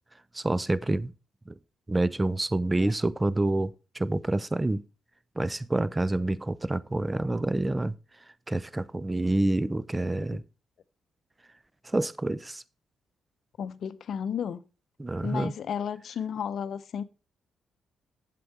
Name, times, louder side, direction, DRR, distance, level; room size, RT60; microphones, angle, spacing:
voice 1, 0.3-1.1 1.5-1.6 1.9-4.8 5.4-8.0 8.5-10.4 11.8-12.6 15.0-15.5, right 2 dB, 20° right, 0.5 m, -27 dB
voice 2, 13.6-14.6 15.2-17.0, left 8 dB, 65° left, 0.6 m, -33 dB
7.8 x 7.6 x 4.1 m
hypercardioid pair, 50°, 0 cm